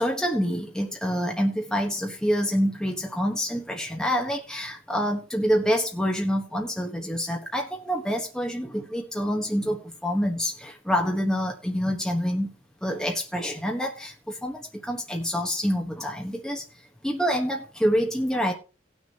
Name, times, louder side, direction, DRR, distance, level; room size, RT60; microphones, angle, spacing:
voice 1, 0.0-12.5 12.8-16.6 17.0-18.5, equal, 5° left, 1 dB, 1.1 m, -27 dB
19.0 x 6.3 x 2.9 m, 0.34 s
head